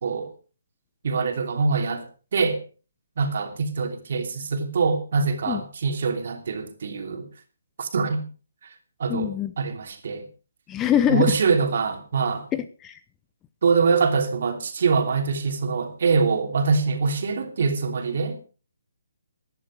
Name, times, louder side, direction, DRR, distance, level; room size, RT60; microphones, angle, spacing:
voice 1, 1.0-2.1 2.3-2.6 3.2-7.3 7.8-8.2 9.0-9.3 9.6-10.2 11.1-12.5 13.6-18.4, right 4 dB, 55° right, 3.0 m, -24 dB
voice 2, 9.1-9.5 10.7-11.3 12.5-13.0, left 10 dB, 15° left, 0.9 m, -23 dB
16.0 x 11.5 x 4.9 m
figure-of-eight pair, 145°, 0 cm